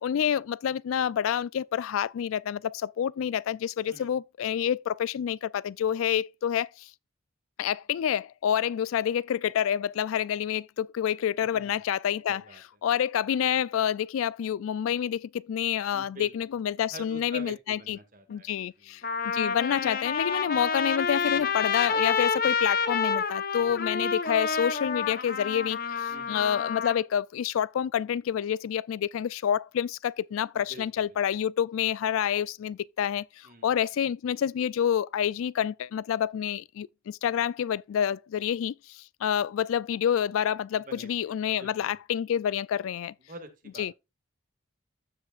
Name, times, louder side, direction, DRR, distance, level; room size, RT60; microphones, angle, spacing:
voice 1, 0.0-6.9 7.6-12.4 12.8-18.0 18.3-43.1 43.8-43.9, left 9 dB, 85° left, 0.3 m, -28 dB
voice 2, 12.3-12.6 15.9-16.3 16.9-18.5 18.8-19.1 21.2-21.6 23.5-23.8 26.1-26.4 30.5-31.2 33.4-33.7 40.7-41.2 41.5-41.9 43.2-43.9, right 1 dB, 40° right, 1.8 m, -47 dB
Trumpet, 18.3-18.4 19.0-27.0, left 5 dB, 45° left, 0.8 m, -28 dB
15.0 x 5.1 x 2.4 m
head